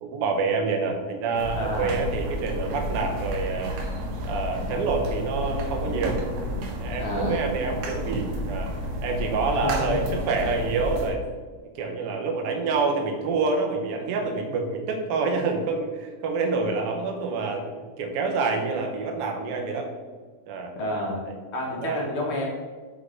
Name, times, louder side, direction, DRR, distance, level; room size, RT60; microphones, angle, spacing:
voice 1, 0.0-3.8 4.2-6.2 6.8-8.7 9.0-11.2 11.8-17.7 18.0-19.9 20.5-20.7 21.3-21.4 21.8-22.0, right 4 dB, 60° right, 2 dB, 1.7 m, -27 dB
sound 1, 1.3-11.1, equal, 85° right, 2.5 m, -31 dB
voice 2, 1.5-2.0 7.0-7.4 9.6-10.2 20.8-21.2 21.5-22.5, left 1 dB, 60° left, -2 dB, 1.8 m, -29 dB
6.2 x 4.6 x 4.9 m, 1.4 s
omnidirectional pair, 3.3 m